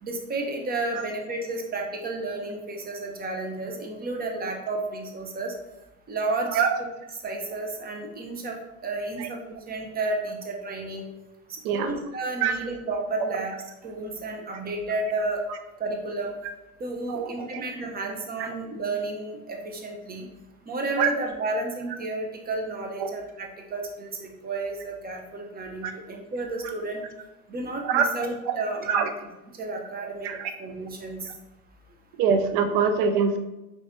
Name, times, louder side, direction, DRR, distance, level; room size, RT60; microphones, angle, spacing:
voice 1, 0.0-5.5 6.1-6.6 7.2-8.6 8.8-9.4 9.7-11.1 11.7-13.5 13.8-15.5 15.8-16.3 16.8-20.3 20.7-27.0 27.5-29.1 29.6-30.3 30.6-31.3, right 2 dB, 20° right, 1 dB, 0.8 m, -32 dB
voice 2, 6.5-6.8 9.2-9.3 11.6-12.0 12.4-12.8 13.2-13.4 17.1-17.6 18.4-18.5 21.0-21.1 21.9-22.0 23.0-23.1 25.8-25.9 27.8-28.1 28.5-29.1 30.0-30.5 32.2-33.4, right 6 dB, 60° right, 8 dB, 0.7 m, -25 dB
4.8 x 3.2 x 2.7 m, 0.97 s
supercardioid pair, 100°, 42 cm